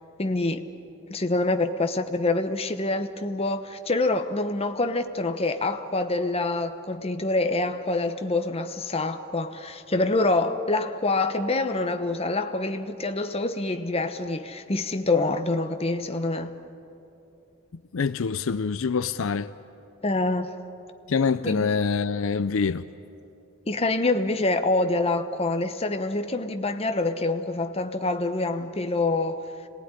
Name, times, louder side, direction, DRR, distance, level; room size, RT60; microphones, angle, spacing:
voice 1, 0.2-0.6 1.1-16.5 20.0-20.5 21.4-21.7 23.7-29.4, left 2 dB, 30° left, 1.0 m, -26 dB
voice 2, 17.9-19.5 21.1-22.8, left 5 dB, 65° left, 0.5 m, -25 dB
26.5 x 19.0 x 9.9 m
head